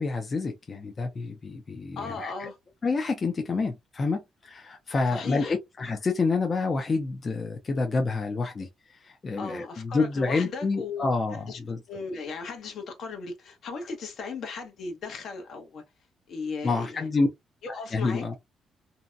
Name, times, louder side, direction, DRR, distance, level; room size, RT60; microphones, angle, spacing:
voice 1, 0.0-2.5 2.8-11.8 16.6-17.3 17.9-18.4, left 3 dB, 35° left, 0.5 m, -28 dB
voice 2, 2.0-2.5 5.1-5.5 9.4-11.1 11.5-11.6 11.9-15.8 16.3-17.1 17.7-18.2, left 4 dB, 65° left, 0.8 m, -36 dB
2.7 x 2.1 x 2.4 m
cardioid pair, 90°, 0 cm